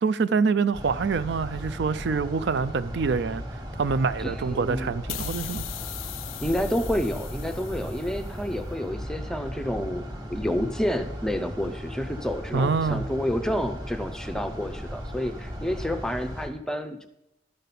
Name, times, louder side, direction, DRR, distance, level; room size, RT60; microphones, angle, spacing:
voice 1, 0.0-3.4 3.8-5.6 12.5-13.0, right 5 dB, 55° right, 0.4 m, -25 dB
sound 1, 0.7-16.5, equal, 20° right, 1.3 m, -36 dB
voice 2, 4.2-4.9 6.4-10.0 10.3-17.1, equal, 5° left, 0.5 m, -29 dB
sound 2, 5.1-8.5, left 17 dB, 80° left, 0.3 m, -39 dB
12.0 x 5.3 x 5.9 m
head